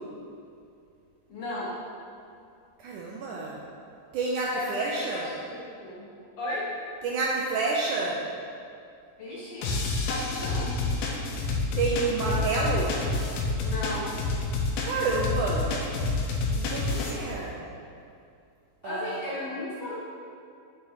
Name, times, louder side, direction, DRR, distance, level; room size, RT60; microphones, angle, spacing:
voice 1, 1.3-1.8 4.5-6.1 6.4-6.7 9.2-10.7 13.6-14.2 16.4-16.5 18.8-20.0, left 1 dB, 60° left, -7 dB, 2.0 m, -35 dB
voice 2, 2.8-3.6 4.1-5.3 7.0-8.2 11.8-13.0 14.8-15.7 16.5-17.6 18.8-19.2, right 3 dB, 80° right, -3 dB, 1.9 m, -29 dB
sound 1, 9.6-17.1, left 3 dB, 85° left, 2.8 m, -29 dB
9.1 x 6.5 x 4.1 m, 2.5 s
omnidirectional pair, 4.3 m